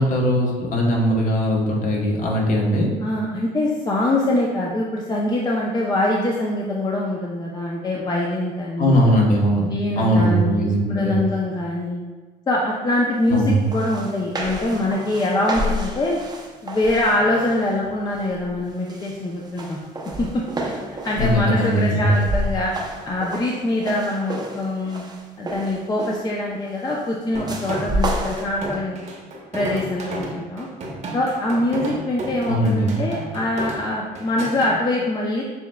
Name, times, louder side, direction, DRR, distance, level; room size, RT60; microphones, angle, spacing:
voice 1, 0.0-2.9 8.8-9.7 10.0-11.2 13.3-13.7 21.2-22.0 32.5-33.0, equal, 50° left, -1 dB, 1.1 m, -19 dB
voice 2, 3.0-9.0 9.5-12.0 12.5-16.2 16.6-19.8 20.2-20.7 21.0-22.7 23.0-25.0 25.4-29.0 29.5-30.7 31.1-35.4, left 1 dB, 25° left, -2 dB, 0.5 m, -24 dB
sound 1, 13.4-13.5 13.7-17.8 18.2-18.5 18.9-26.4 27.5-28.4, equal, 25° right, 0.6 m, -30 dB
sound 2, 27.3-34.7, right 2 dB, 45° right, 0.9 m, -32 dB
6.9 x 3.2 x 2.3 m, 1.3 s
cardioid pair, 110°, 17 cm